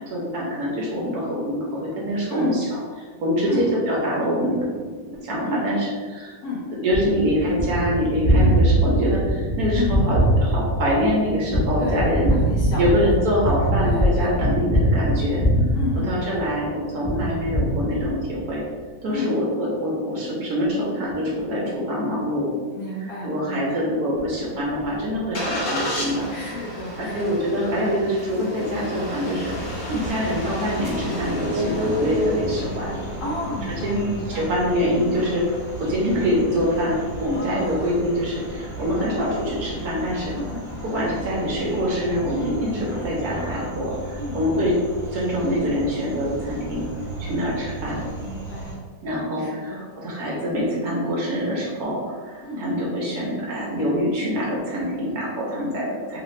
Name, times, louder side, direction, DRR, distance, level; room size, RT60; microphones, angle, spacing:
voice 1, 0.1-2.6 3.2-4.8 5.2-6.3 6.8-12.3 12.8-15.4 16.1-18.6 19.0-22.5 23.2-26.3 27.0-29.5 30.1-33.0 33.8-40.3 40.8-44.8 45.1-46.8 47.2-48.0 49.0-56.2, equal, 65° right, -4 dB, 1.1 m, -25 dB
Gunshot gunfire, 6.9-16.6 17.0-18.4, right 1 dB, 30° left, 0.5 m, -22 dB
voice 2, 9.7-10.1 11.8-13.1 13.8-14.4 15.7-16.2 19.1-19.3 22.7-23.9 26.3-27.5 29.8-30.0 31.9-32.2 33.2-34.5 37.3-37.9 39.0-39.2 40.3-40.6 44.1-44.7 47.2-47.4 48.2-48.8 49.4-49.9 52.4-52.6 55.5-55.8, left 2 dB, 65° left, -4 dB, 1.0 m, -31 dB
Engine starting, 24.2-39.4, equal, 85° left, 0.4 m, -32 dB
sound 1, 29.4-48.7, right 2 dB, 10° right, 1.3 m, -36 dB
3.1 x 2.5 x 3.1 m, 1.5 s
omnidirectional pair, 1.9 m